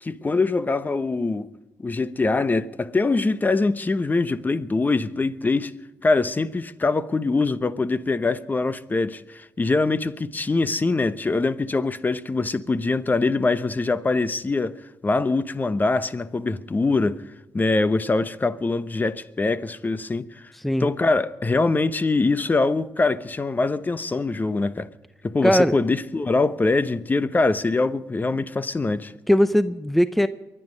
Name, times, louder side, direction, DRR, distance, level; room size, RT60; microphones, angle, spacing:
voice 1, 0.0-1.5 1.8-5.7 6.0-14.8 15.0-17.2 17.5-20.5 20.8-24.9 25.2-29.1, left 3 dB, 30° left, 0.9 m, -23 dB
voice 2, 25.4-25.8 29.3-30.3, equal, ahead, 0.6 m, -19 dB
23.5 x 10.0 x 5.2 m
supercardioid pair, 65°, 6 cm